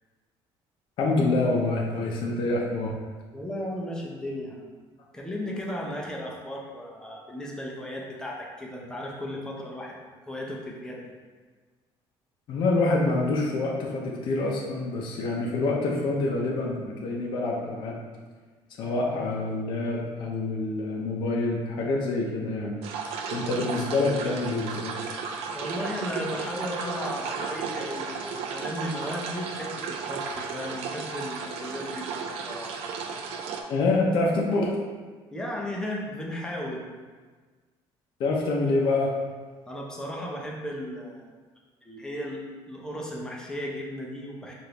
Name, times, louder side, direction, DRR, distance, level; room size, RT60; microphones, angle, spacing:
voice 1, 1.0-3.0 12.5-18.0 18.8-22.8 23.3-24.9 33.7-34.7 38.2-39.1, left 2 dB, 50° left, -2 dB, 0.6 m, -26 dB
voice 2, 3.3-4.7 5.1-11.1 25.5-32.8 35.3-36.9 39.7-41.3 41.8-44.5, left 1 dB, 5° left, -2 dB, 0.5 m, -35 dB
sound 1, 22.8-33.6, right 5 dB, 70° right, 0.4 m, -34 dB
5.0 x 2.5 x 2.9 m, 1.4 s
cardioid pair, 160°, 10 cm